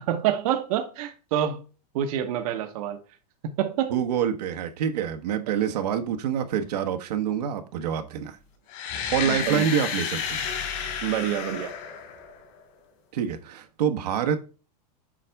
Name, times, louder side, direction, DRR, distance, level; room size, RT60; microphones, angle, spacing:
voice 1, 0.0-1.6 1.9-3.0 3.6-4.0 9.2-9.6 11.0-11.7, right 10 dB, 60° right, 1.1 m, -27 dB
voice 2, 3.9-8.4 9.1-10.4 13.1-14.5, right 8 dB, 75° right, 1.3 m, -26 dB
sound 1, 8.7-12.6, left 8 dB, 50° left, 2.9 m, -31 dB
7.5 x 5.0 x 3.4 m
supercardioid pair, 145°, 21 cm